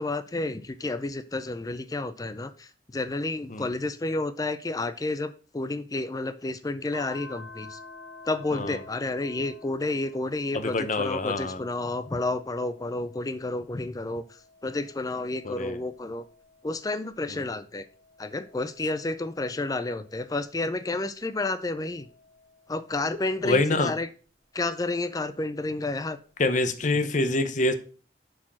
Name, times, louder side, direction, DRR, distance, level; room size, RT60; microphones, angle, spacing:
voice 1, 0.0-7.8 8.3-16.2 16.6-17.8 18.2-22.1 22.7-24.1 24.5-26.2, left 2 dB, 20° left, 0.4 m, -31 dB
sound 1, 6.9-13.6 14.1-17.0 17.6-20.4 21.1-23.6 24.9-26.0, left 3 dB, 10° right, 3.0 m, -51 dB
voice 2, 10.5-11.6 15.4-15.8 17.3-17.4 23.4-23.9 26.4-27.7, left 2 dB, 45° left, 0.9 m, -26 dB
7.2 x 4.8 x 6.1 m
head